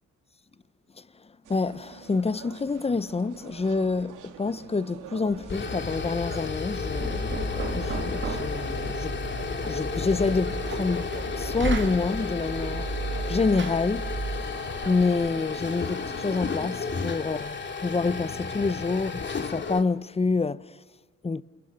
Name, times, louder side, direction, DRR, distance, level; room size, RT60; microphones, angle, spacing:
voice 1, 1.0-9.2 9.6-11.1 11.4-13.0 13.3-14.1 14.8-20.7 21.2-21.4, left 4 dB, 20° left, 0.8 m, -27 dB
sound 1, 1.4-16.7, right 8 dB, 85° right, 2.4 m, -45 dB
sound 2, 5.3-19.8, left 5 dB, 40° left, 2.4 m, -33 dB
Knock, 6.6-14.5, right 3 dB, 40° right, 2.5 m, -34 dB
29.0 x 28.5 x 6.5 m
cardioid pair, 90°, 30 cm